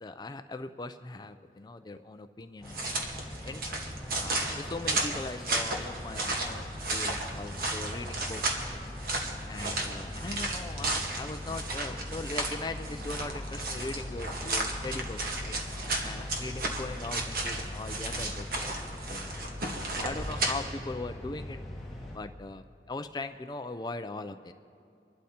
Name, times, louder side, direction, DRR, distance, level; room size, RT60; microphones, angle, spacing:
voice 1, 0.0-8.8 9.5-15.6 16.0-18.7 19.1-19.6 20.0-21.6 22.1-24.5, left 2 dB, 25° left, 9 dB, 0.4 m, -40 dB
sound 1, 2.6-22.2, left 1 dB, ahead, 1.7 m, -41 dB
sound 2, 2.7-20.5, right 2 dB, 55° right, 1.4 m, -34 dB
27.0 x 12.0 x 2.8 m, 2.6 s
head